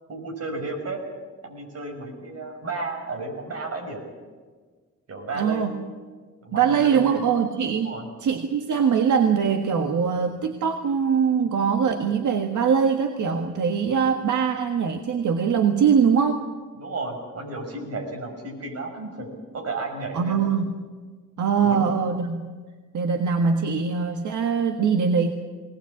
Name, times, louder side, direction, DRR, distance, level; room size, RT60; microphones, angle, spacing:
voice 1, 0.1-1.0 1.4-4.1 5.1-5.8 6.4-7.2 7.8-8.0 16.7-19.3 19.5-20.4 21.6-21.9, right 3 dB, 55° right, 2 dB, 6.0 m, -33 dB
voice 2, 5.3-5.7 6.5-8.0 8.2-16.4 20.1-20.7 21.4-22.5 22.9-25.3, right 6 dB, 80° right, 5 dB, 1.6 m, -22 dB
20.5 x 19.5 x 8.5 m, 1.5 s
wide cardioid pair, 150°, 30 cm